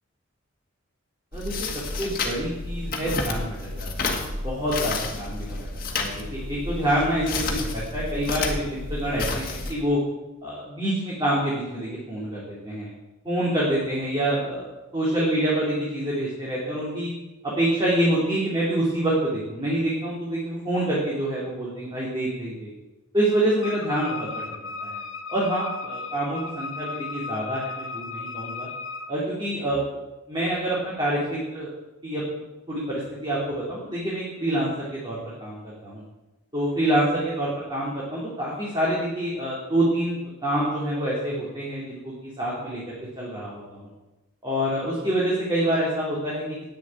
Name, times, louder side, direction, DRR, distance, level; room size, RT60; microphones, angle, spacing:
sound 1, 1.3-9.7, left 3 dB, 45° left, 1.6 m, -30 dB
voice 1, 1.3-1.7 2.0-5.7 5.9-10.0 10.4-12.9 13.2-14.6 14.9-17.1 17.6-22.7 23.1-25.0 25.3-28.7 29.1-31.7 32.0-32.2 32.7-36.0 36.5-43.9 44.4-46.4, right 1 dB, 20° right, -6 dB, 2.7 m, -27 dB
Wind instrument woodwind instrument, 23.6-29.1, left 4 dB, 70° left, 0.9 m, -35 dB
9.1 x 7.2 x 8.8 m, 1.0 s
head